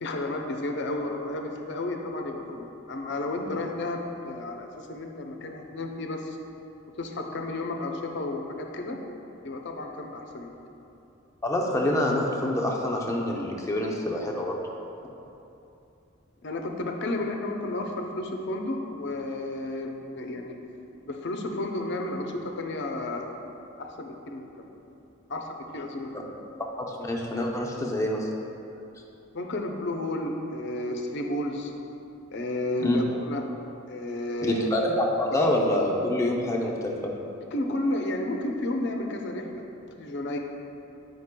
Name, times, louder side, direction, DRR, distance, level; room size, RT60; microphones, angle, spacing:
voice 1, 0.0-6.4 7.0-9.0 9.4-10.5 16.4-20.5 21.1-23.3 23.8-24.8 25.3-26.3 29.3-31.7 32.3-33.4 33.9-34.7 37.5-40.4, left 2 dB, 60° left, 2 dB, 0.6 m, -32 dB
voice 2, 11.4-14.6 26.1-26.2 26.9-28.3 32.8-33.0 34.4-37.1, left 1 dB, 15° left, -1 dB, 0.6 m, -26 dB
9.5 x 5.2 x 2.2 m, 2.8 s
head